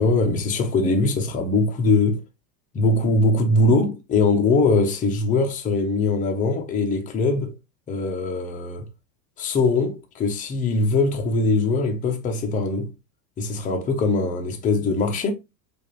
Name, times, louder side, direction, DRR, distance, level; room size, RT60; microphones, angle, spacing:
voice 1, 0.0-2.2 2.7-7.5 7.9-8.9 9.4-12.9 13.4-15.3, left 3 dB, 15° left, 0.5 m, -21 dB
4.6 x 2.5 x 2.9 m
supercardioid pair, 145°, 50 cm